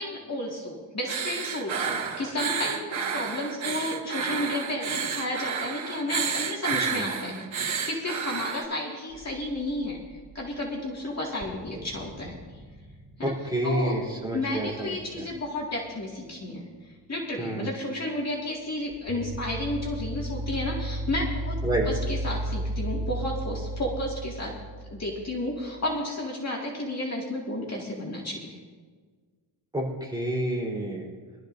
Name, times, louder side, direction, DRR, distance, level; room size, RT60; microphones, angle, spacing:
voice 1, 0.0-12.6 13.2-13.3 13.6-14.0 14.3-16.7 17.1-21.6 21.9-24.6 24.9-28.6, left 1 dB, 30° left, -3 dB, 2.3 m, -32 dB
sound 1, 1.1-8.6, right 6 dB, 65° right, 2.0 m, -31 dB
voice 2, 6.8-7.1 13.2-15.3 17.4-17.7 21.6-21.9 29.7-31.1, right 1 dB, 10° right, -3 dB, 4.0 m, -29 dB
sound 2, 9.1-10.6 10.9-11.0 11.4-15.8 18.9-26.0, right 1 dB, 35° right, 5.2 m, -35 dB
23.0 x 13.0 x 2.7 m, 1.5 s
wide cardioid pair, 130°, 50 cm